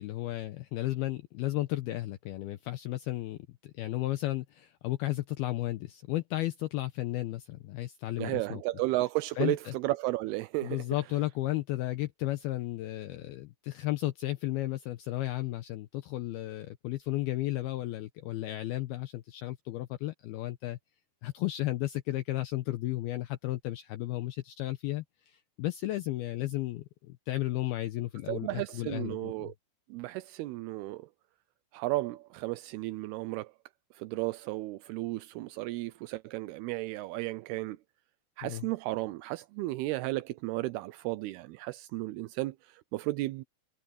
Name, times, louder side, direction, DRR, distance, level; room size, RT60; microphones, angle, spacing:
voice 1, 0.0-8.6 9.4-9.7 10.6-20.8 21.2-29.5 38.4-38.7, left 16 dB, 80° left, 2.3 m, -34 dB
voice 2, 8.2-10.8 28.3-29.5 29.9-31.1 31.7-33.5 33.9-37.8 38.4-43.4, right 19 dB, 85° right, 2.3 m, -34 dB
omnidirectional pair, 5.2 m